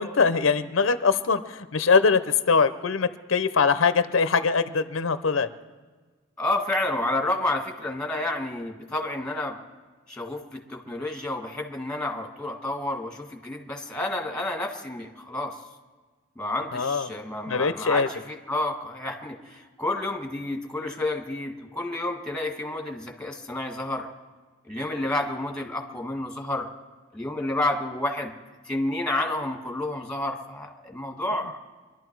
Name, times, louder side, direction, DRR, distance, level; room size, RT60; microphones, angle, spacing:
voice 1, 0.0-2.2 2.5-5.5 16.7-17.1 17.5-18.1, left 5 dB, 90° left, 12 dB, 0.7 m, -22 dB
voice 2, 6.4-9.6 10.1-15.5 16.4-24.1 24.7-26.7 27.1-28.3 28.6-31.6, left 2 dB, 5° left, 2 dB, 1.8 m, -30 dB
25.5 x 11.5 x 4.7 m, 1.4 s
head